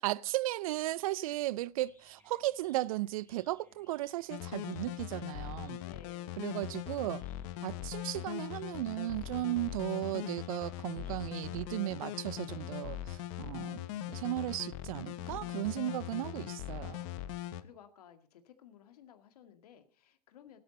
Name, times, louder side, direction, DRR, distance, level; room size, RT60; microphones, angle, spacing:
voice 1, 0.0-5.8 6.4-7.2 7.6-13.8 14.1-17.1, right 17 dB, 60° right, 0.5 m, -35 dB
sound 1, 1.3-11.7, left 3 dB, 10° left, 3.9 m, -68 dB
sound 2, 4.3-17.6, left 13 dB, 50° left, 1.1 m, -41 dB
voice 2, 5.8-6.6 14.8-15.9 16.8-20.6, left 9 dB, 70° left, 2.0 m, -58 dB
16.0 x 12.0 x 4.0 m
hypercardioid pair, 105°, 20 cm